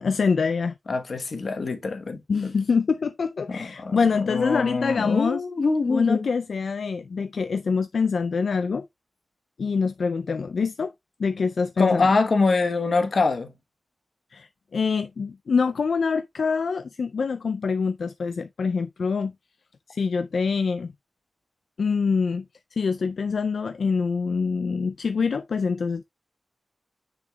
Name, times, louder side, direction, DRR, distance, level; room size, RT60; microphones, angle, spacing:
voice 1, 0.0-0.7 2.3-5.4 5.9-8.9 9.6-10.9 11.2-12.0 14.3-19.3 19.9-20.9 21.8-22.5 22.7-26.0, left 5 dB, 80° left, 0.4 m, -25 dB
voice 2, 0.9-2.5 3.5-6.3 11.8-13.6, left 3 dB, 60° left, 1.0 m, -24 dB
7.0 x 6.2 x 2.3 m
wide cardioid pair, 115°, 0 cm